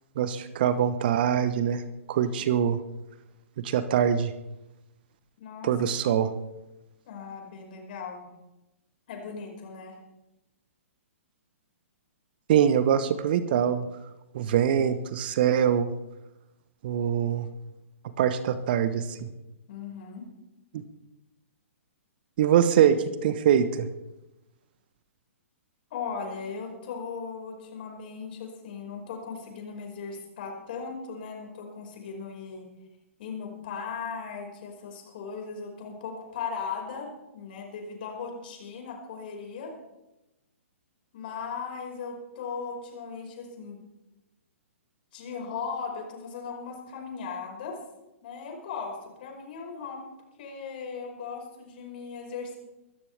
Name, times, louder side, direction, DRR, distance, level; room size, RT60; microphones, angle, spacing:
voice 1, 0.2-1.8 2.1-2.8 3.6-4.3 5.6-6.3 12.5-13.8 14.3-15.9 16.8-17.5 18.2-19.3 22.4-23.0 23.2-23.9, right 9 dB, 45° right, 13 dB, 1.0 m, -23 dB
voice 2, 5.4-5.7 7.1-8.3 9.1-10.0 19.7-20.3 25.9-32.7 33.2-39.8 41.1-43.8 45.1-47.8 48.2-50.1 50.4-52.6, left 5 dB, 45° left, 1 dB, 5.3 m, -38 dB
23.5 x 14.0 x 3.5 m, 0.97 s
figure-of-eight pair, 120°, 7 cm